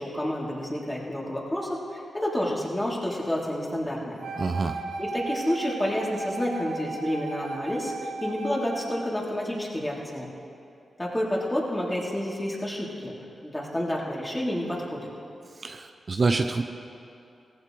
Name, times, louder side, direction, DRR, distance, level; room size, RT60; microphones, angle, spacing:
voice 1, 0.0-4.2 5.0-10.3 11.0-13.1 13.4-15.1, left 1 dB, 15° left, -4 dB, 3.5 m, -29 dB
Wind instrument woodwind instrument, 4.2-9.1, right 3 dB, 85° right, 1.0 m, -35 dB
voice 2, 4.4-4.8 15.6-16.6, right 3 dB, 50° right, 6 dB, 0.7 m, -26 dB
17.5 x 15.0 x 3.4 m, 2.6 s
cardioid pair, 50°, 0 cm